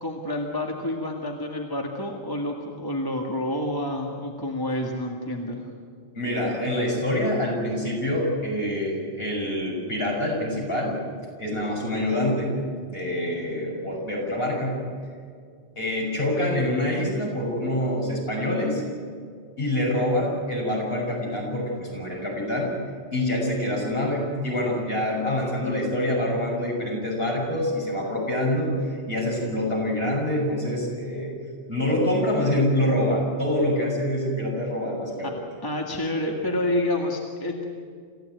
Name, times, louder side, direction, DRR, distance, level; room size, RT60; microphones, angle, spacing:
voice 1, 0.0-5.7 35.2-35.3 35.6-37.6, left 1 dB, 20° left, 0 dB, 1.9 m, -28 dB
voice 2, 6.1-11.0 11.4-12.6 12.9-14.8 15.7-18.8 19.6-22.7 23.1-31.3 31.7-35.3, left 1 dB, 55° left, -2 dB, 6.8 m, -26 dB
27.5 x 15.0 x 9.2 m, 2.1 s
omnidirectional pair, 1.2 m